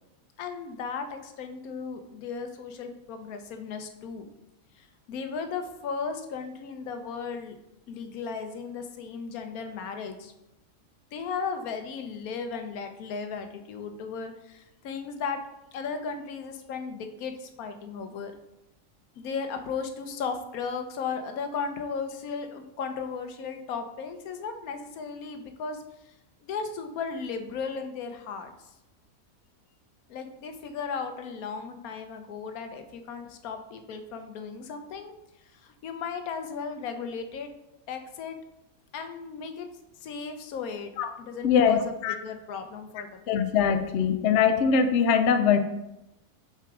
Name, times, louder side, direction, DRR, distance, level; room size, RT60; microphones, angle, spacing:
voice 1, 0.4-4.3 4.7-7.5 7.9-10.3 11.1-15.4 15.7-18.3 19.2-25.8 26.4-28.7 30.1-35.1 35.5-37.5 37.9-38.4 38.9-39.7 40.0-40.9 41.2-43.4, left 5 dB, 90° left, 7 dB, 1.2 m, -36 dB
voice 2, 41.4-42.1 43.3-45.6, left 7 dB, 65° left, 8 dB, 0.8 m, -22 dB
5.8 x 5.8 x 3.6 m, 0.89 s
omnidirectional pair, 1.5 m